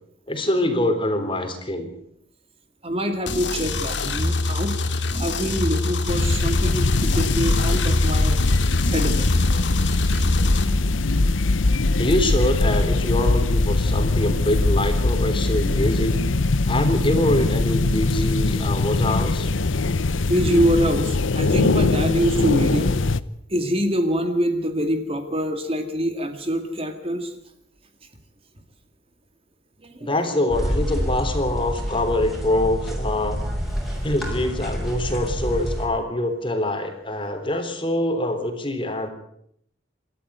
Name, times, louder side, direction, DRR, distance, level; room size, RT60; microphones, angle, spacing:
voice 1, 0.3-1.9 12.0-16.2 16.7-19.5 30.0-33.4 34.0-39.1, left 1 dB, 25° left, 6 dB, 3.5 m, -24 dB
voice 2, 2.8-4.8 5.1-8.4 8.9-10.6 11.2-11.3 20.3-22.9 23.5-27.3 29.8-30.1, equal, 30° right, 7 dB, 2.2 m, -25 dB
sound 1, 3.3-10.6, left 2 dB, 65° left, 2.6 m, -25 dB
sound 2, 6.1-23.2, left 2 dB, 85° left, 0.9 m, -21 dB
sound 3, 30.5-35.9, equal, ahead, 6.1 m, -27 dB
27.0 x 13.0 x 9.4 m, 0.71 s
head